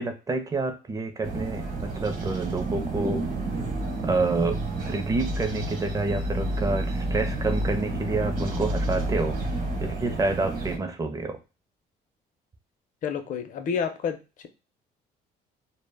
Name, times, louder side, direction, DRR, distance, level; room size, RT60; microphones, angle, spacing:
voice 1, 0.0-3.2 4.0-9.4 9.8-11.4, right 3 dB, 20° right, 7 dB, 0.5 m, -28 dB
sound 1, 1.2-10.8, right 1 dB, 55° right, 0.9 m, -30 dB
voice 2, 13.0-14.2, left 6 dB, 50° left, 7 dB, 0.5 m, -29 dB
2.1 x 2.0 x 3.3 m, 0.29 s
cardioid pair, 110°, 17 cm